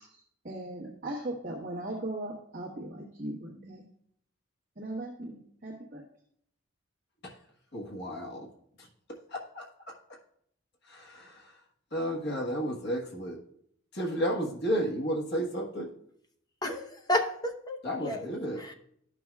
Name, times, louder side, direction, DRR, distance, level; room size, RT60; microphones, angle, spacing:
voice 1, 0.1-3.8 4.8-6.0, right 1 dB, 40° right, -6 dB, 1.3 m, -38 dB
voice 2, 7.7-8.4 9.3-9.6 10.9-11.4 11.9-13.4 13.9-15.9 17.8-18.6, equal, 50° left, -2 dB, 1.4 m, -32 dB
voice 3, 16.6-18.7, left 1 dB, 20° left, 4 dB, 0.7 m, -32 dB
13.0 x 6.1 x 2.3 m, 0.69 s
head